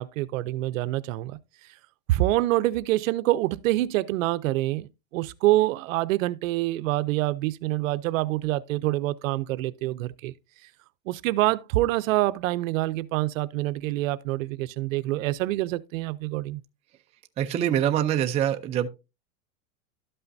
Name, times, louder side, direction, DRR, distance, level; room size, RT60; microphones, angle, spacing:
voice 1, 0.0-1.4 2.1-10.3 11.1-16.6, right 17 dB, 70° right, 0.7 m, -26 dB
voice 2, 17.4-18.9, right 10 dB, 15° right, 0.4 m, -24 dB
12.5 x 5.6 x 2.6 m
supercardioid pair, 145°, 40 cm